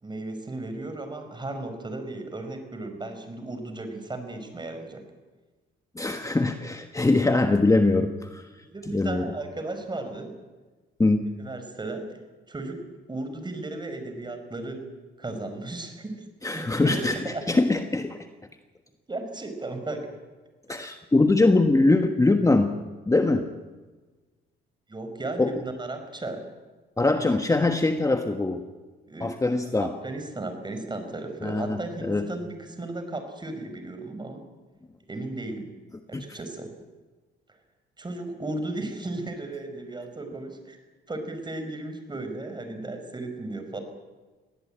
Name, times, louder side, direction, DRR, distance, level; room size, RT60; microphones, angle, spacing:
voice 1, 0.0-5.0 8.7-10.3 11.4-12.2 12.5-12.8 13.1-14.8 15.2-16.1 16.5-17.0 17.3-17.4 19.1-20.2 24.9-26.5 29.1-29.3 29.8-34.4 35.1-35.7 36.1-36.7 37.5-37.6 38.0-40.8 41.1-43.8, right 2 dB, 20° right, 7 dB, 4.8 m, -35 dB
voice 2, 5.9-8.5 8.9-9.3 11.0-11.3 16.4-18.3 20.7-22.7 23.1-23.5 25.4-25.5 27.0-28.7 29.2-29.9 31.4-32.3 36.1-36.2, left 2 dB, 15° left, 7 dB, 1.4 m, -22 dB
21.5 x 17.0 x 8.8 m, 1.3 s
cardioid pair, 90°, 20 cm